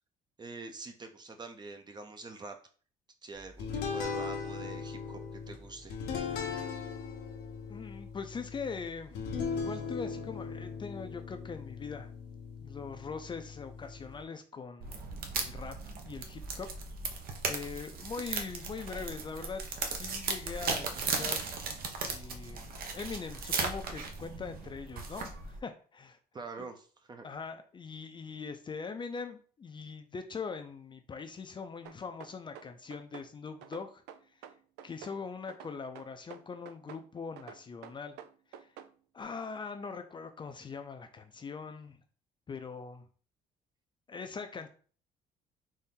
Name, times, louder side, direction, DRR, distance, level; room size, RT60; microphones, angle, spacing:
voice 1, 0.4-2.6 3.2-5.9 26.3-27.3, right 3 dB, 25° right, 6 dB, 0.7 m, -45 dB
sound 1, 3.6-14.2, left 5 dB, 85° left, 1.0 m, -39 dB
voice 2, 7.7-12.1 12.6-15.0 15.3-16.7 17.5-19.6 19.9-21.5 22.0-26.2 26.6-26.7 27.2-34.0 34.8-38.2 38.5-38.7 39.1-42.0 42.5-43.1 44.1-44.7, left 5 dB, 30° left, 7 dB, 0.5 m, -42 dB
sound 2, 14.8-25.6, right 4 dB, 60° right, 0.9 m, -37 dB
sound 3, 31.9-33.3 33.6-35.2 35.5-37.1 37.4-38.9, right 9 dB, 85° right, 0.4 m, -49 dB
4.2 x 2.7 x 3.7 m, 0.41 s
cardioid pair, 110°, 17 cm